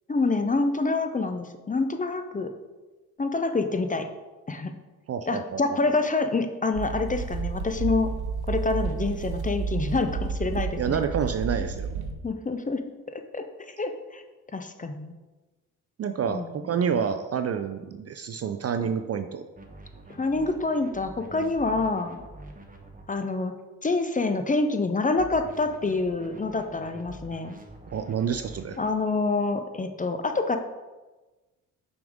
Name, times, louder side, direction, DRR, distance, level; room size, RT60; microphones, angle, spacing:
voice 1, 0.1-2.5 3.2-4.1 4.5-4.7 5.3-8.1 8.5-11.0 12.2-12.8 13.1-13.4 13.8-14.2 14.5-15.1 16.3-16.5 20.1-22.2 23.1-23.5 23.8-27.6 28.8-30.6, left 3 dB, 20° left, 8 dB, 0.6 m, -27 dB
voice 2, 5.1-5.6 5.9-6.0 10.7-12.0 16.0-19.5 27.9-28.8, right 7 dB, 35° right, 8 dB, 0.4 m, -28 dB
sound 1, 6.7-12.1, right 5 dB, 55° right, 0.8 m, -31 dB
sound 2, 19.6-23.0 25.2-29.0, right 2 dB, 20° right, 1.1 m, -46 dB
5.9 x 5.1 x 3.6 m, 1.2 s
hypercardioid pair, 50°, 45 cm